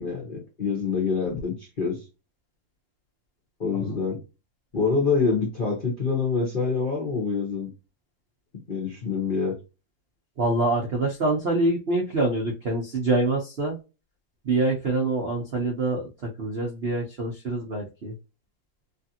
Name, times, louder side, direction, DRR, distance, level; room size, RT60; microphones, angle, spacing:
voice 1, 0.0-2.0 3.6-4.2 4.7-7.7 8.7-9.5, left 5 dB, 40° left, -2 dB, 0.7 m, -26 dB
voice 2, 10.4-13.8 14.4-18.1, right 2 dB, 65° right, 0 dB, 0.6 m, -25 dB
3.1 x 2.5 x 2.7 m, 0.28 s
omnidirectional pair, 2.2 m